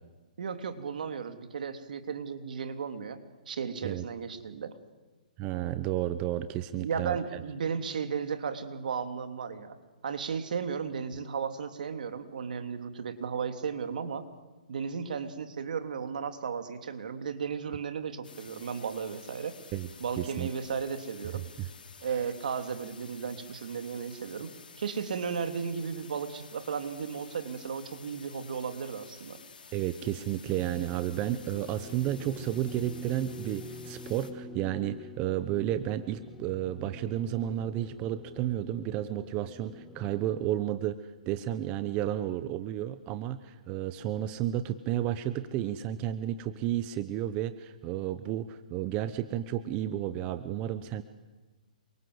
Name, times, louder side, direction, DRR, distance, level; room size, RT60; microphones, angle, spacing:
voice 1, 0.4-3.2 3.5-4.8 6.8-9.8 10.0-14.2 14.7-19.5 20.0-21.4 22.0-24.5 24.8-29.4, right 6 dB, 70° right, 8 dB, 3.2 m, -35 dB
voice 2, 5.4-7.4 19.7-19.9 20.2-20.5 21.6-21.7 22.1-22.3 29.7-41.0 41.3-51.0, right 12 dB, 25° right, 12 dB, 1.0 m, -32 dB
sound 1, 18.2-34.3, left 5 dB, 90° left, 4.1 m, -52 dB
sound 2, 30.5-40.6, left 2 dB, 5° left, 1.8 m, -47 dB
28.5 x 24.5 x 8.1 m, 1.2 s
hypercardioid pair, 155°, 5 cm